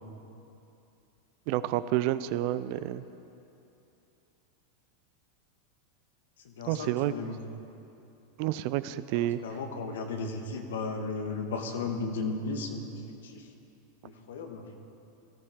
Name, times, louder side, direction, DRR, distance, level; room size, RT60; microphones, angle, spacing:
voice 1, 1.5-3.0 6.7-7.1 8.4-9.4, right 14 dB, 55° right, 15 dB, 0.5 m, -29 dB
voice 2, 6.4-7.4 9.1-12.9 13.2-13.4 14.0-14.6, left 3 dB, 70° left, 4 dB, 1.4 m, -35 dB
18.5 x 13.5 x 3.7 m, 2.8 s
hypercardioid pair, 90°, 0 cm